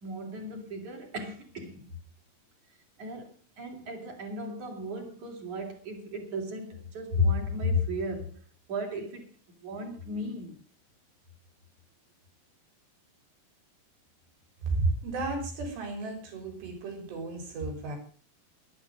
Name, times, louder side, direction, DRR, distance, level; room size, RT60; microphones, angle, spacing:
voice 1, 0.0-1.9 3.0-8.4 8.7-10.6, left 2 dB, 45° right, 2 dB, 4.2 m, -34 dB
voice 2, 14.7-18.0, right 3 dB, 90° right, 4 dB, 6.0 m, -32 dB
12.0 x 12.0 x 6.4 m, 0.41 s
omnidirectional pair, 4.7 m